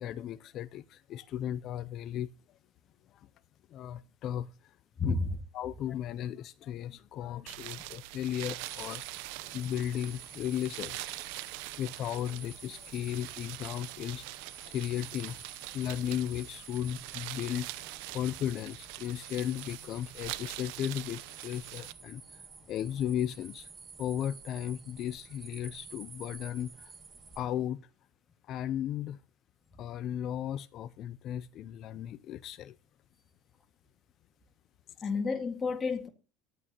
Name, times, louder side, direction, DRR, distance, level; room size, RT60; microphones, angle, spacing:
voice 1, 0.0-2.3 3.7-4.5 5.0-5.2 5.5-9.0 9.5-11.1 11.8-14.3 14.7-15.4 15.7-17.9 18.1-22.2 22.7-23.7 24.0-26.9 27.4-27.8 28.5-29.2 29.8-32.7, left 10 dB, 50° left, 0.5 m, -35 dB
voice 2, 5.0-5.4 35.0-36.1, left 4 dB, 25° left, 1.9 m, -30 dB
sound 1, 7.5-21.9, right 19 dB, 75° right, 0.8 m, -43 dB
sound 2, 8.6-27.4, right 4 dB, 30° right, 5.5 m, -51 dB
12.5 x 8.6 x 3.0 m
supercardioid pair, 95°, 0 cm